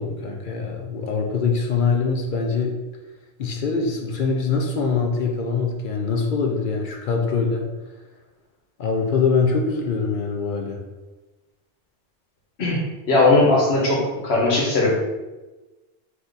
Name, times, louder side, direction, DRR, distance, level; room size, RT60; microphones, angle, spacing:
voice 1, 0.0-2.8 3.4-7.7 8.8-10.8, left 4 dB, 60° left, 2 dB, 0.6 m, -23 dB
voice 2, 13.1-14.9, left 2 dB, 80° left, -3 dB, 1.3 m, -18 dB
3.4 x 2.9 x 4.0 m, 1.1 s
omnidirectional pair, 1.1 m